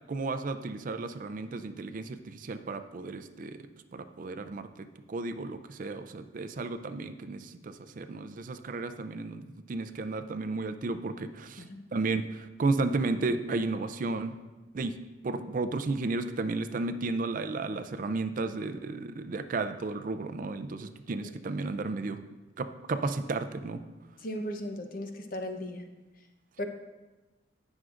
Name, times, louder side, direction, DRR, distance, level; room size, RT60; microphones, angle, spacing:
voice 1, 0.1-3.6 3.9-11.6 11.9-14.4 14.7-15.0 15.2-22.2 22.6-23.8, right 3 dB, 45° right, 9 dB, 0.4 m, -33 dB
voice 2, 24.2-25.8 26.6-26.7, equal, 45° left, 6 dB, 0.7 m, -36 dB
17.0 x 6.3 x 2.5 m, 1.1 s
head